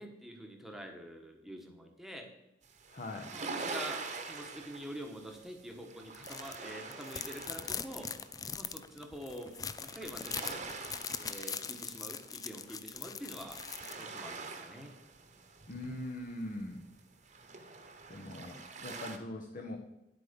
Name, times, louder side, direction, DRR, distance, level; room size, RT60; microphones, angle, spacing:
voice 1, 0.0-2.3 3.3-8.1 8.5-9.5 9.8-10.7 11.2-14.9, equal, ahead, 3 dB, 1.2 m, -46 dB
sound 1, 2.6-9.1 9.4-19.2, right 4 dB, 45° right, 1.3 m, -45 dB
voice 2, 2.9-3.3 15.7-16.8 18.1-19.8, left 1 dB, 45° left, 2 dB, 1.1 m, -41 dB
sound 2, 6.1-6.6 6.9-14.0, left 6 dB, 20° left, 0.4 m, -41 dB
10.5 x 8.3 x 5.2 m, 0.89 s
head